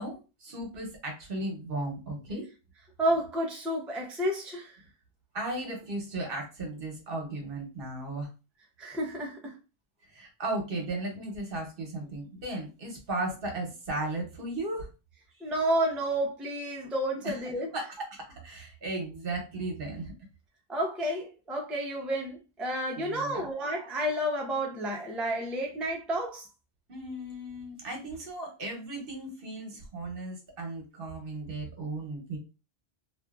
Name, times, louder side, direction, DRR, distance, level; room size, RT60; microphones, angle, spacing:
voice 1, 0.0-2.5 5.3-8.3 10.1-14.9 17.2-17.4 17.7-20.1 23.0-23.5 26.9-32.4, right 2 dB, 60° right, 1.1 m, -36 dB
voice 2, 3.0-4.8 8.8-9.6 15.4-17.7 20.7-26.5, right 1 dB, ahead, 0.4 m, -30 dB
2.6 x 2.4 x 2.3 m
omnidirectional pair, 1.1 m